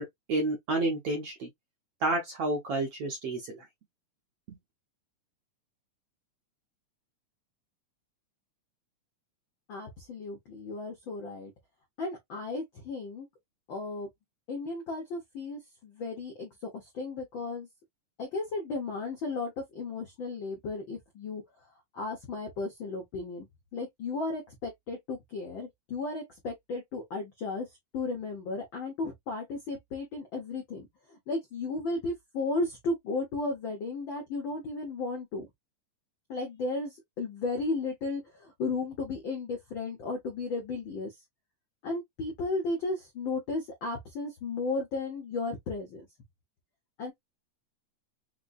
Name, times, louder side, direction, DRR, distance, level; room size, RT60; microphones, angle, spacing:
voice 1, 0.0-1.5 2.0-3.6 4.5-4.6, right 2 dB, 65° right, 1.6 m, -30 dB
voice 2, 9.7-11.5 12.0-13.3 13.7-14.1 14.5-17.7 18.2-21.4 21.9-23.5 23.7-27.7 27.9-35.5 36.3-41.1 41.8-46.0 47.0-47.1, left 3 dB, 70° left, 1.1 m, -34 dB
5.1 x 2.2 x 2.4 m
omnidirectional pair, 3.7 m